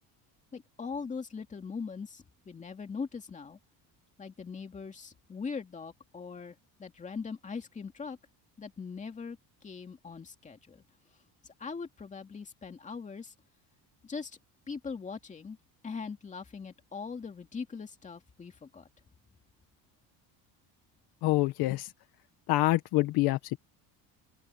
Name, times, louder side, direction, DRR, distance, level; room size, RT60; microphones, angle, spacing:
voice 1, 0.5-3.6 4.2-8.2 8.6-9.4 9.6-10.8 11.6-13.3 14.0-14.4 14.7-15.6 15.8-18.9, left 5 dB, 20° left, 2.4 m, -41 dB
voice 2, 21.2-21.9 22.5-23.6, left 18 dB, 70° left, 1.3 m, -26 dB
open air
cardioid pair, 165°, 39 cm